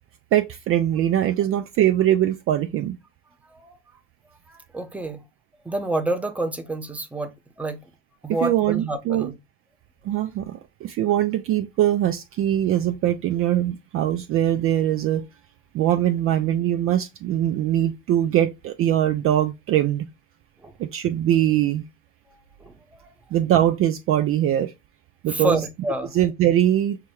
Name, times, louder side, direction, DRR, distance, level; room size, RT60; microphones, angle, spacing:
voice 1, 0.3-3.0 8.3-9.3 10.0-15.2 15.7-20.1 20.8-21.8 23.3-24.7 25.2-25.6 26.1-27.0, right 11 dB, 40° right, 0.4 m, -22 dB
voice 2, 4.5-5.2 5.6-7.8 8.2-9.3 20.6-20.7 22.6-22.7 25.3-26.1, right 1 dB, 5° right, 0.7 m, -28 dB
5.9 x 2.2 x 3.0 m
hypercardioid pair, 85°, 35 cm